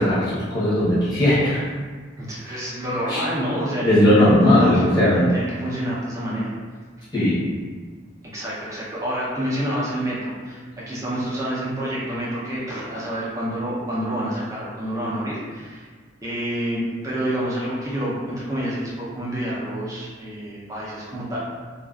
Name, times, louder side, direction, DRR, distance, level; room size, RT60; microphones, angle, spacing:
voice 1, 0.0-1.6 2.4-2.6 3.1-3.2 3.8-5.3 7.1-7.4, left 1 dB, 20° left, -11 dB, 0.7 m, -18 dB
voice 2, 2.2-6.5 8.3-15.9 16.2-21.4, equal, 15° right, -8 dB, 0.5 m, -28 dB
2.4 x 2.3 x 2.3 m, 1.5 s
head